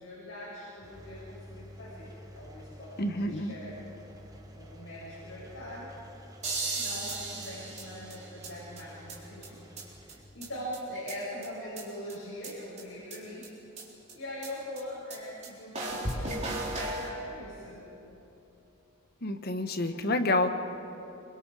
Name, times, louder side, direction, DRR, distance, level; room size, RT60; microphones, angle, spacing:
voice 1, 0.0-3.8 4.5-5.9 6.7-9.6 10.3-13.5 14.1-17.8, left 1 dB, 70° left, -7 dB, 6.3 m, -42 dB
Engine, 0.8-10.2, equal, 15° right, 1.4 m, -50 dB
voice 2, 3.0-3.5 19.2-20.5, left 2 dB, 45° left, 7 dB, 1.1 m, -28 dB
sound 1, 6.4-8.5 8.8-8.9 9.1-9.2 9.4-9.5 9.8-9.9 10.1-10.2 10.4-10.5 10.7-11.5 11.8-11.9 12.1-12.2 12.4-12.5 12.8-12.9 13.1-13.2 13.4-13.5 13.8-13.9 14.1-14.2 14.4-14.5 14.8-14.9 15.1-15.2 15.4-15.5 15.7-17.1, right 2 dB, 30° right, 4.0 m, -35 dB
27.5 x 23.0 x 4.9 m, 3.0 s
head